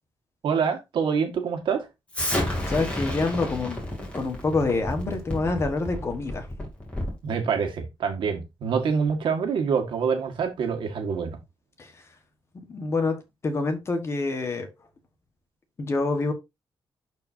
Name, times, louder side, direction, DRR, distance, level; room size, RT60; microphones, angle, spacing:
voice 1, 0.4-1.9 7.2-11.4, right 6 dB, 70° right, 1.9 m, -26 dB
Explosion, 2.1-7.2, left 1 dB, 15° left, 2.9 m, -31 dB
voice 2, 2.7-3.8 4.1-6.5 11.8-11.9 12.5-13.2 13.4-14.7 15.8-16.3, left 3 dB, 30° left, 1.4 m, -26 dB
11.5 x 4.7 x 2.8 m
wide cardioid pair, 175°, 9 cm